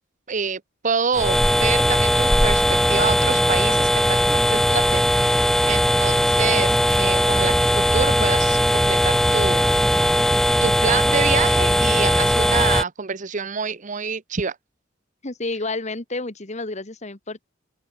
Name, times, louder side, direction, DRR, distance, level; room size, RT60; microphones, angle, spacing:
voice 1, 0.3-10.2 10.6-14.6, right 5 dB, 40° right, 0.8 m, -27 dB
sound 1, 1.1-12.8, equal, ahead, 1.3 m, -19 dB
voice 2, 15.2-17.5, left 2 dB, 35° left, 1.7 m, -30 dB
open air
head